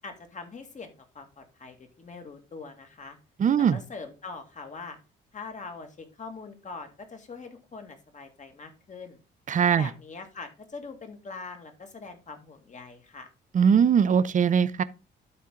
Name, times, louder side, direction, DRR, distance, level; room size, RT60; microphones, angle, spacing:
voice 1, 0.0-3.2 3.7-5.0 5.3-9.2 9.7-13.3, left 4 dB, 40° left, 2.0 m, -43 dB
voice 2, 3.4-3.8 9.5-9.9 13.5-14.8, right 7 dB, 40° right, 0.6 m, -21 dB
12.0 x 4.4 x 3.7 m
cardioid pair, 90°, 20 cm